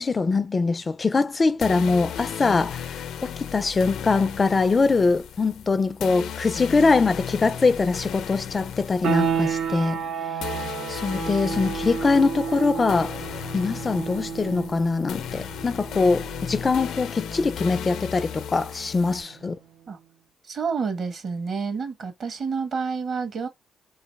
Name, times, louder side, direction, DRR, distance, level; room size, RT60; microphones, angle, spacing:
voice 1, 0.0-10.0 10.5-10.6 10.9-13.2 13.5-19.6, left 4 dB, 30° left, 0.4 m, -23 dB
sound 1, 1.6-19.2, left 8 dB, 75° left, 0.6 m, -36 dB
sound 2, 9.0-19.5, right 7 dB, 75° right, 0.5 m, -32 dB
voice 2, 20.5-23.5, right 5 dB, 55° right, 1.3 m, -29 dB
4.0 x 2.8 x 4.5 m
cardioid pair, 90°, 0 cm